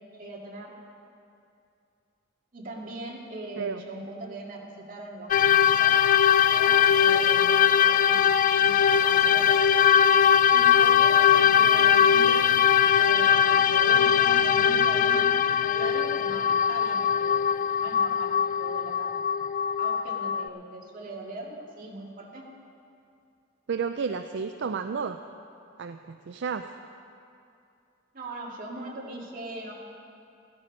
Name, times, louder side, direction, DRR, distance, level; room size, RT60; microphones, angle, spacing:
voice 1, 0.2-0.7 2.5-6.0 6.5-9.5 10.5-12.4 12.9-15.3 15.6-19.2 19.8-22.4 28.1-29.7, right 2 dB, 45° right, -2 dB, 2.2 m, -40 dB
sound 1, 5.3-20.5, left 8 dB, 45° left, 0.3 m, -21 dB
voice 2, 23.7-25.2 25.8-26.7, right 5 dB, 65° right, 8 dB, 0.4 m, -31 dB
14.5 x 13.5 x 5.3 m, 2.6 s
head